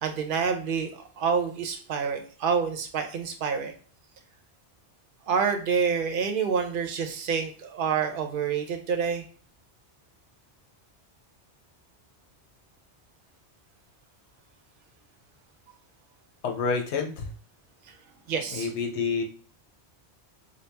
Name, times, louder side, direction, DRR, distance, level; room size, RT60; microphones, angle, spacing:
voice 1, 0.0-3.7 5.3-9.2 18.3-18.8, right 6 dB, 55° right, 6 dB, 0.8 m, -28 dB
voice 2, 16.4-17.3 18.5-19.2, left 5 dB, 80° left, 3 dB, 1.1 m, -28 dB
4.2 x 2.3 x 3.4 m, 0.40 s
omnidirectional pair, 1.1 m